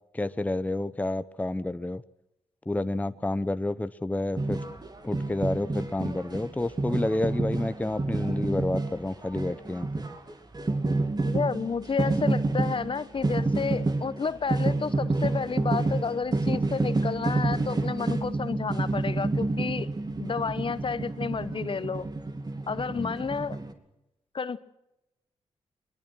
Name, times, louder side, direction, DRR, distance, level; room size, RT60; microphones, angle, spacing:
voice 1, 0.1-2.0 2.7-4.6 5.0-10.0 23.0-23.2, left 2 dB, 15° left, 13 dB, 0.7 m, -29 dB
sound 1, 4.4-23.7, right 2 dB, 35° right, 2.6 m, -29 dB
voice 2, 11.2-19.9 20.2-22.1 22.7-23.6 24.3-24.6, left 5 dB, 45° left, 15 dB, 1.0 m, -31 dB
22.0 x 21.0 x 6.2 m, 0.93 s
supercardioid pair, 50°, 12 cm